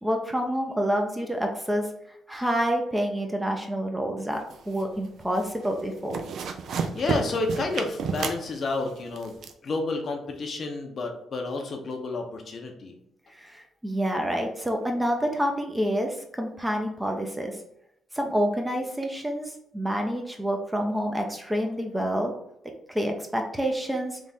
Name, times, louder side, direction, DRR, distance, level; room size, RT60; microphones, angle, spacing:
voice 1, 0.0-1.9 2.3-6.2 13.4-17.6 18.1-22.3 22.9-24.2, equal, 10° right, 2 dB, 0.5 m, -28 dB
sound 1, 4.4-5.1 5.4-5.7 6.0-9.5, right 6 dB, 65° right, 0.4 m, -31 dB
voice 2, 6.9-9.4 9.6-12.9, left 3 dB, 45° left, 3 dB, 0.7 m, -30 dB
3.5 x 2.4 x 4.1 m, 0.76 s
cardioid pair, 110°, 0 cm